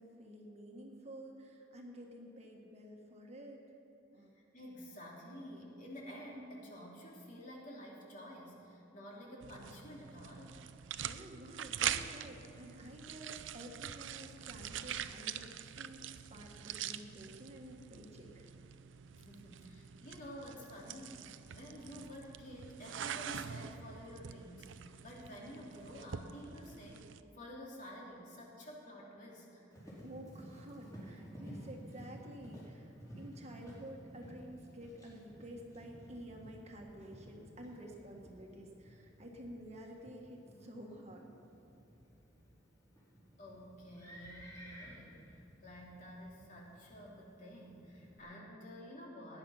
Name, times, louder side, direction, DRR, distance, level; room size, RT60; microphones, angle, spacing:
voice 1, 0.0-3.8 4.1-4.3 11.0-16.0 16.3-18.5 30.0-41.3, equal, 35° right, 1 dB, 1.6 m, -51 dB
voice 2, 4.2-10.6 19.1-21.2 21.5-27.0 27.3-29.6 43.4-49.4, equal, 40° left, -3 dB, 3.0 m, -50 dB
sound 1, 9.4-27.2, right 9 dB, 80° right, 0.5 m, -44 dB
Livestock farm animals working animals, 29.7-48.2, equal, 20° left, 4.3 m, -54 dB
18.5 x 10.5 x 5.7 m, 3.0 s
head